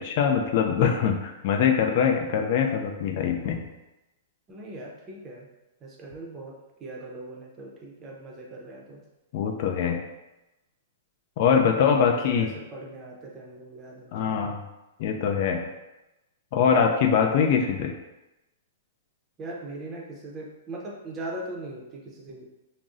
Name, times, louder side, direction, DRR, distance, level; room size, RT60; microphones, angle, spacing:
voice 1, 0.0-3.6 9.3-10.0 11.4-12.5 14.1-14.6 15.0-15.7 16.5-17.9, left 7 dB, 50° left, 3 dB, 0.3 m, -23 dB
voice 2, 4.5-5.5 5.8-9.0 11.7-14.3 19.4-22.5, right 2 dB, 20° right, -2 dB, 0.6 m, -40 dB
2.6 x 2.0 x 3.6 m, 1.0 s
hypercardioid pair, 150°, 0 cm